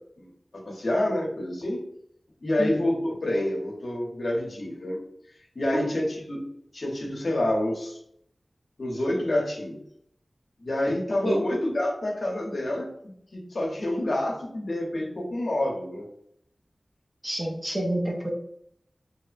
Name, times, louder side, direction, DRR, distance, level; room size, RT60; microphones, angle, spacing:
voice 1, 0.6-1.8 2.4-5.0 5.5-6.4 6.7-8.0 8.8-9.8 10.6-12.9 13.3-16.1, left 1 dB, 65° left, -1 dB, 0.7 m, -27 dB
voice 2, 17.2-18.3, right 1 dB, 20° right, 0 dB, 0.5 m, -28 dB
2.7 x 2.1 x 2.4 m, 0.70 s
wide cardioid pair, 85°, 0 cm